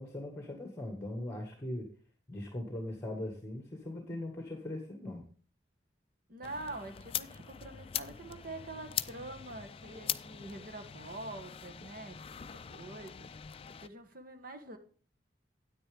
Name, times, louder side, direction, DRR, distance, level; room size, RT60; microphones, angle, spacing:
voice 1, 0.0-1.9 2.3-5.2, left 1 dB, 15° left, 1.6 m, -40 dB
voice 2, 6.3-13.3 13.8-14.8, right 2 dB, 50° right, 1.4 m, -45 dB
sound 1, 6.4-13.9, left 10 dB, 30° left, 0.4 m, -42 dB
9.7 x 8.9 x 3.5 m
head